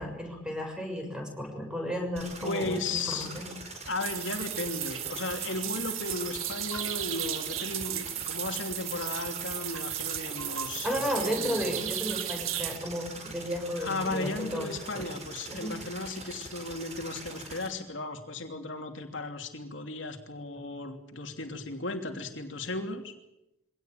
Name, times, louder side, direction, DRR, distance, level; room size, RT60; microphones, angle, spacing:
voice 1, 0.0-3.5 10.8-15.0 15.5-15.8 20.6-20.7, equal, 5° right, 3 dB, 6.7 m, -34 dB
sound 1, 2.2-17.7, right 3 dB, 35° right, 5.0 m, -43 dB
voice 2, 2.4-3.4 3.9-11.6 13.8-23.1, left 2 dB, 65° left, 4 dB, 2.9 m, -35 dB
sound 2, 4.0-12.8, right 12 dB, 90° right, 1.8 m, -35 dB
24.5 x 18.0 x 9.1 m, 0.87 s
head